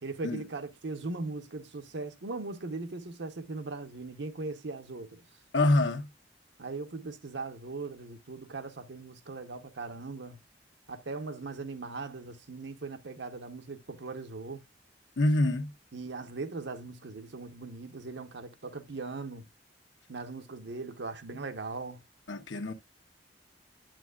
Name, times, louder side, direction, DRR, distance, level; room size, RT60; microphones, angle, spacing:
voice 1, 0.0-5.2 6.6-10.4 10.9-14.6 15.9-19.5 20.1-22.0 22.6-22.7, right 3 dB, 65° right, 0.8 m, -39 dB
voice 2, 5.5-6.1 15.2-15.7 22.3-22.7, left 2 dB, 80° left, 1.1 m, -26 dB
8.9 x 7.2 x 2.3 m
head